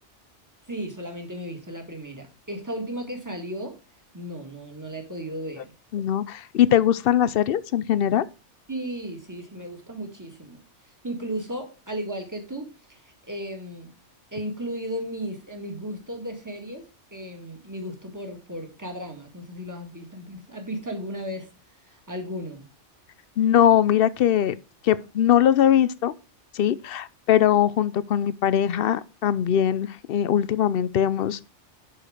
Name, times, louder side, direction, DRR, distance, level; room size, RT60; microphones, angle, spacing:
voice 1, 0.7-3.7 4.1-5.7 8.7-10.6 11.0-13.9 14.3-16.9 17.1-21.5 21.9-22.7, equal, 15° right, 1.9 m, -35 dB
voice 2, 5.9-8.2 23.4-24.5 24.8-26.1 26.5-31.4, left 10 dB, 60° left, 0.7 m, -21 dB
11.0 x 4.7 x 5.0 m
omnidirectional pair, 1.2 m